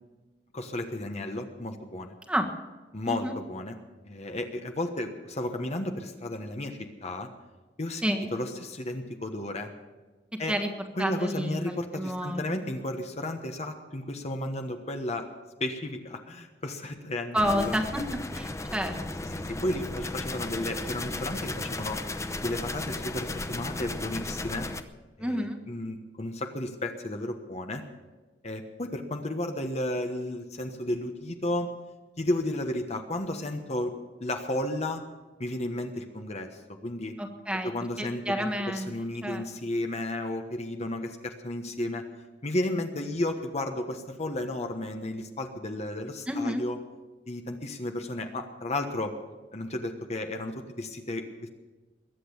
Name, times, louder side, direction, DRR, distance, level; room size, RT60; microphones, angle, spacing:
voice 1, 0.5-2.2 2.9-3.8 4.0-7.3 7.8-9.7 10.4-10.6 11.0-15.3 15.6-17.7 19.3-22.0 22.4-24.7 25.2-27.8 28.4-31.7 32.2-33.9 34.2-35.0 35.4-37.1 37.6-42.0 42.4-46.8 47.3-49.1 49.5-51.5, left 1 dB, 40° left, 5 dB, 1.3 m, -33 dB
voice 2, 8.0-8.3 10.5-12.4 17.3-18.0 18.3-19.2 25.2-25.6 37.2-37.7 38.0-38.9 39.2-39.4 46.3-46.6, equal, 5° right, 3 dB, 1.5 m, -30 dB
sound 1, 17.4-24.8, left 2 dB, 15° left, 0.8 m, -35 dB
22.0 x 8.5 x 7.1 m, 1.2 s
head